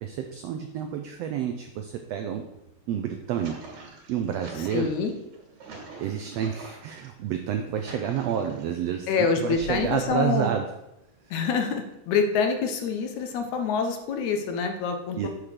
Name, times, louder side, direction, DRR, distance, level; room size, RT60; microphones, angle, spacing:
voice 1, 0.0-2.4 2.9-3.5 4.1-4.9 6.0-9.1 9.4-10.6 15.2-15.3, right 9 dB, 90° right, 5 dB, 1.4 m, -29 dB
sound 1, 3.1-7.1 7.5-8.8 9.4-10.1, right 4 dB, 70° right, 3.0 m, -44 dB
voice 2, 4.6-5.1 9.1-10.5 11.3-15.3, left 5 dB, 75° left, 5 dB, 2.2 m, -26 dB
7.3 x 6.4 x 5.0 m, 0.86 s
omnidirectional pair, 3.6 m